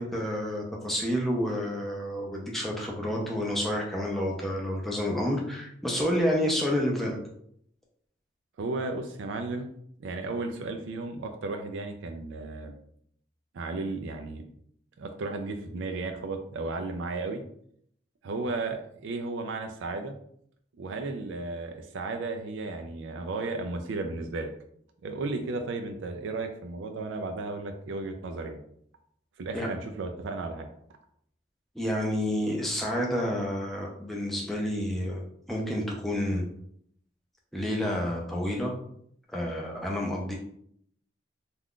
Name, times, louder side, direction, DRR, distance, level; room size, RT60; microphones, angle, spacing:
voice 1, 0.0-7.2 29.5-29.7 31.8-35.2 35.5-36.4 37.5-38.7 39.3-40.4, equal, ahead, -2 dB, 0.5 m, -29 dB
voice 2, 8.6-9.7 10.0-12.7 13.5-14.4 15.0-17.4 18.2-20.1 20.8-24.5 25.0-28.6 29.4-30.7, right 3 dB, 85° right, 5 dB, 0.4 m, -34 dB
2.4 x 2.2 x 3.6 m, 0.68 s
head